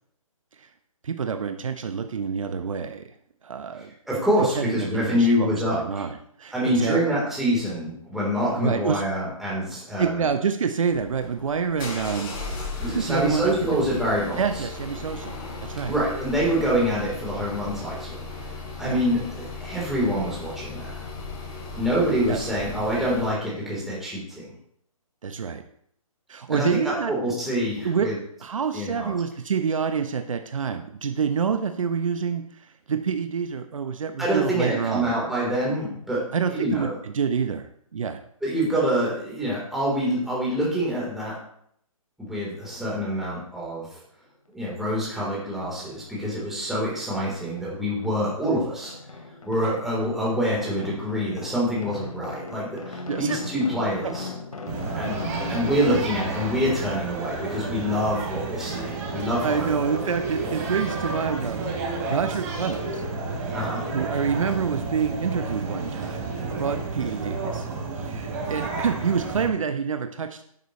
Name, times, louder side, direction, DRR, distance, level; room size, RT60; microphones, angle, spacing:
voice 1, 1.0-3.0 3.4-3.9 4.5-7.2 8.6-9.0 10.0-12.3 12.9-13.8 14.4-15.9 18.8-19.0 22.3-22.5 25.2-25.6 26.3-27.1 27.8-28.1 28.4-35.2 36.3-38.2 49.6-49.8 53.1-53.4 55.8-56.1 59.4-61.7 62.1-63.1 63.9-67.7 68.0-70.4, right 6 dB, 65° right, 8 dB, 1.0 m, -27 dB
voice 2, 4.1-6.0 6.5-10.2 12.8-14.4 15.9-18.2 18.8-20.9 21.8-24.5 26.5-28.2 28.7-29.1 34.2-36.2 36.5-36.9 38.4-41.4 42.2-44.0 44.5-48.9 49.5-54.3 54.9-55.2 55.5-59.7 63.5-63.8, equal, ahead, -7 dB, 3.8 m, -26 dB
sound 1, 10.9-23.4, left 3 dB, 40° left, 4.7 m, -36 dB
sound 2, 44.7-44.8 45.2-46.4 46.6-56.0, left 3 dB, 75° left, 2.6 m, -39 dB
sound 3, 54.7-69.5, right 3 dB, 30° right, 3.6 m, -31 dB
12.5 x 11.0 x 3.2 m, 0.68 s
hypercardioid pair, 155°, 18 cm